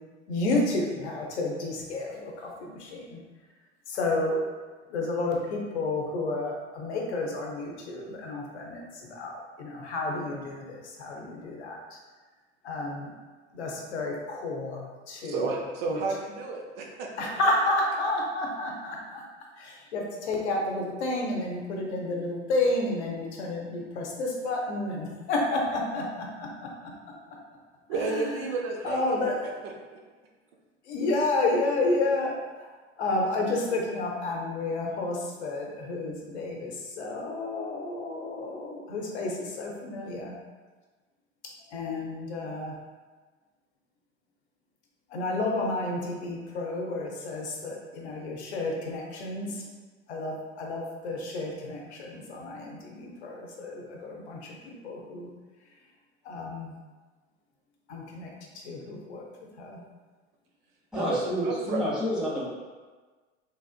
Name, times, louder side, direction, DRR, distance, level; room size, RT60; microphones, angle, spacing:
voice 1, 0.3-3.2 3.9-4.4 4.9-8.8 9.1-11.8 12.6-13.1 13.5-15.4 15.9-16.0 17.2-19.2 19.6-26.9 28.0-28.5 28.8-29.5 30.9-32.4 33.0-40.4 41.7-42.7 45.1-49.6 50.1-55.3 56.3-56.7 57.9-58.3 58.6-59.2 59.6-59.8, left 2 dB, 65° left, -1 dB, 0.7 m, -31 dB
voice 2, 15.2-17.3 27.9-30.0 60.9-61.9, right 4 dB, 50° right, 0 dB, 0.7 m, -32 dB
voice 3, 60.9-62.5, equal, ahead, -9 dB, 0.7 m, -29 dB
3.4 x 2.4 x 2.4 m, 1.3 s
figure-of-eight pair, 80°, 36 cm